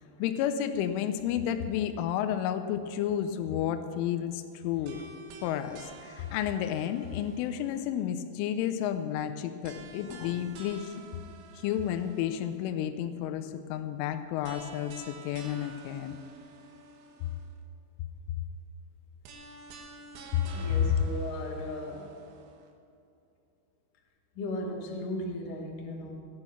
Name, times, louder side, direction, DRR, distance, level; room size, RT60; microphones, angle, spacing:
voice 1, 0.2-5.0 5.4-10.9 11.6-16.2 20.3-21.0, left 10 dB, 85° left, 8 dB, 2.9 m, -31 dB
sound 1, 4.9-8.0 9.6-12.6 14.4-17.6 19.2-22.7, right 4 dB, 80° right, 4.2 m, -50 dB
voice 2, 20.5-22.1 24.4-26.1, left 1 dB, 55° left, 0 dB, 2.7 m, -36 dB
17.5 x 9.8 x 5.9 m, 2.6 s
omnidirectional pair, 6.0 m